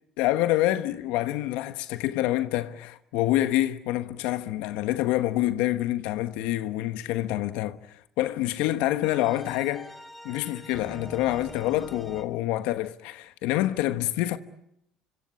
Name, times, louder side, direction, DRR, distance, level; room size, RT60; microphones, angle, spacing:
voice 1, 0.2-9.9 10.2-14.4, left 15 dB, 75° left, 1.2 m, -27 dB
sound 1, 9.0-12.2, equal, 5° left, 4.5 m, -44 dB
26.0 x 25.5 x 8.5 m
supercardioid pair, 80°, 2 cm